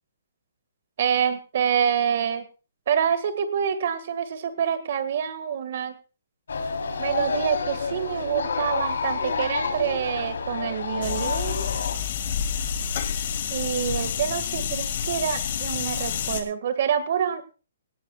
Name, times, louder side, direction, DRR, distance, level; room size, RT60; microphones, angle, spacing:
voice 1, 1.0-2.5 2.9-5.9 7.0-11.7 13.5-17.5, right 8 dB, 40° right, 11 dB, 1.8 m, -26 dB
sound 1, 6.5-11.9, left 5 dB, 85° left, 3.6 m, -29 dB
sound 2, 11.0-16.4, left 8 dB, 40° left, 1.9 m, -29 dB
18.5 x 17.5 x 2.4 m, 0.34 s
hypercardioid pair, 175°, 0 cm